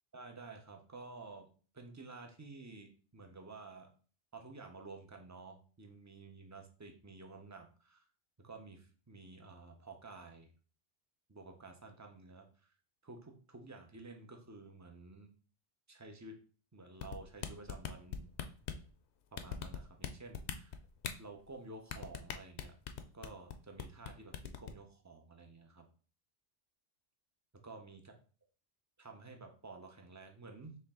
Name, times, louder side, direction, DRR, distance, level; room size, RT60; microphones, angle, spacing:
voice 1, 0.1-1.5 1.7-3.9 4.3-8.0 8.4-10.5 11.3-12.7 13.0-15.3 15.9-16.4 16.7-18.3 19.3-20.8 21.2-22.8 23.1-25.9 27.5-28.1 29.0-30.8, right 3 dB, 25° right, 3 dB, 0.4 m, -52 dB
sound 1, 17.0-18.9 19.4-20.1 20.3-21.1 21.9-23.5 23.8-24.1 24.3-24.7, left 9 dB, 70° left, 0.8 m, -39 dB
4.4 x 3.1 x 3.6 m, 0.39 s
omnidirectional pair, 1.2 m